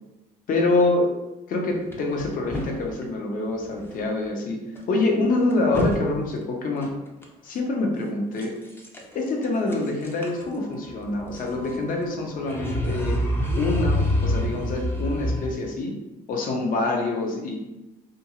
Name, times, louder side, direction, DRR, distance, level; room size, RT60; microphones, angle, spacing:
voice 1, 0.5-1.1 1.5-4.6 4.9-6.9 7.4-8.5 9.1-13.2 13.6-16.0 16.3-17.6, left 2 dB, 55° left, 1 dB, 0.6 m, -25 dB
sound 1, 1.9-3.0 3.7-3.9 4.2-4.3 4.7-4.8 5.2-6.0 6.3-6.4 6.8-7.2 8.4-9.2 9.4-15.5, left 1 dB, 15° left, 0.5 m, -28 dB
2.5 x 2.3 x 2.8 m, 0.99 s
cardioid pair, 110°, 17 cm